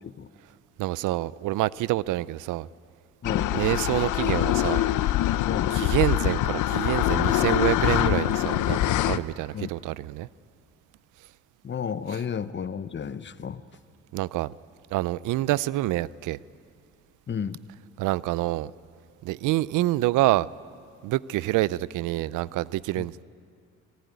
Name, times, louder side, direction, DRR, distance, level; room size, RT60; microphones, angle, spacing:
voice 1, 0.8-2.7 3.5-4.9 5.7-10.3 14.1-14.5 14.9-16.4 18.0-18.7 19.2-20.5 21.0-23.2, right 16 dB, 90° right, 0.5 m, -27 dB
sound 1, 3.2-9.2, left 14 dB, 80° left, 0.7 m, -24 dB
voice 2, 3.2-3.6 5.5-5.8 9.5-9.7 11.6-13.6 17.3-17.6 23.0-23.1, left 7 dB, 40° left, 0.9 m, -32 dB
25.5 x 19.5 x 9.4 m
cardioid pair, 90°, 30 cm